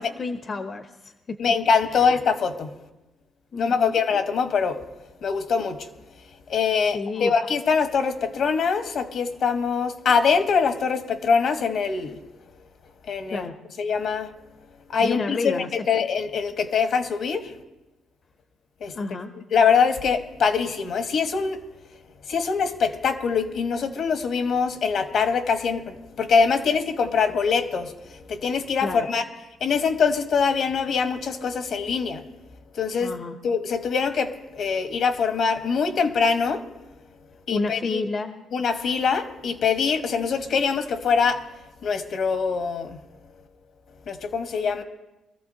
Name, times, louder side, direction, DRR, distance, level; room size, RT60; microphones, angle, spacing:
voice 1, 0.0-1.4 1.9-2.0 3.5-4.0 6.9-7.3 13.3-13.5 15.0-15.7 18.9-19.3 28.8-29.1 33.0-33.4 37.5-38.3, left 3 dB, 45° left, 7 dB, 0.8 m, -30 dB
voice 2, 1.4-2.7 3.6-4.8 5.2-5.9 6.5-12.2 13.1-13.5 13.8-14.3 14.9-17.5 18.8-18.9 19.5-21.6 22.3-29.2 29.6-32.2 32.7-33.2 33.4-36.6 37.5-38.0 38.5-41.4 41.8-43.0 44.1-44.8, left 5 dB, 65° left, 7 dB, 1.3 m, -23 dB
23.0 x 14.0 x 2.8 m, 1.0 s
cardioid pair, 90°, 0 cm